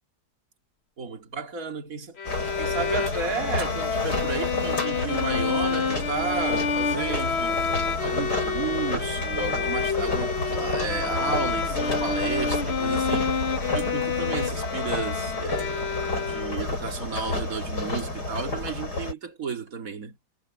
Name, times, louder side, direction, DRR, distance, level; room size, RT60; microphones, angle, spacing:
voice 1, 1.0-2.2 2.6-7.6 8.0-13.4 13.7-15.9 16.2-20.2, right 5 dB, 55° right, 2.7 m, -33 dB
sound 1, 2.2-19.1, left 2 dB, 80° left, 7.9 m, -30 dB
Bowed string instrument, 2.2-16.8, left 5 dB, 45° left, 1.2 m, -29 dB
omnidirectional pair, 1.8 m